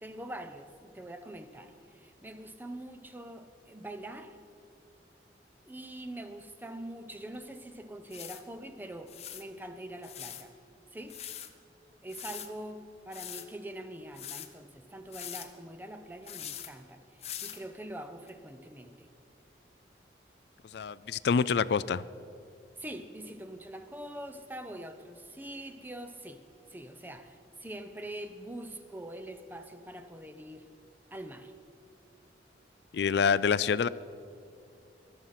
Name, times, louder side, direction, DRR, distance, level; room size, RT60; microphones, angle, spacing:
voice 1, 0.0-4.4 5.7-10.5 10.9-11.2 12.0-19.1 22.8-26.4 26.7-30.7 31.1-31.5, right 1 dB, 10° right, 9 dB, 0.7 m, -44 dB
sound 1, 7.3-7.4 8.1-8.4 9.1-9.4 10.0-10.4 11.1-11.5 12.1-12.5 13.1-13.5 14.2-14.5 15.1-15.5 16.3-16.7 17.2-17.6 18.3-18.4, left 10 dB, 35° left, 0.8 m, -42 dB
voice 2, 20.7-22.0 32.9-33.9, left 6 dB, 65° left, 18 dB, 0.3 m, -26 dB
23.0 x 7.7 x 5.7 m, 2.5 s
head